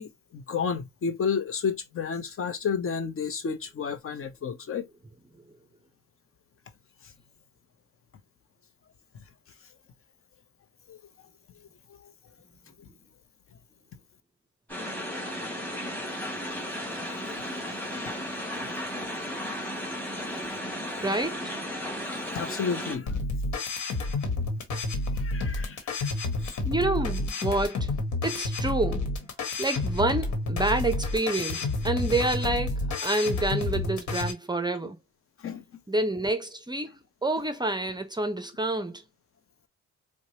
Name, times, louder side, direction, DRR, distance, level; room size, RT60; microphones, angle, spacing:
voice 1, 0.0-4.9 10.9-11.0 22.1-23.1 25.1-26.1 26.4-26.6 35.4-35.6, left 6 dB, 45° left, 0.8 m, -31 dB
sound 1, 14.7-23.0, equal, 5° left, 1.9 m, -34 dB
voice 2, 21.0-21.4 26.6-27.9 28.2-29.1 29.6-35.0 35.9-36.9 37.2-39.0, right 2 dB, 15° right, 0.5 m, -28 dB
sound 2, 23.1-34.3, left 2 dB, 65° left, 1.3 m, -30 dB
4.6 x 2.2 x 2.8 m
cardioid pair, 90°, 30 cm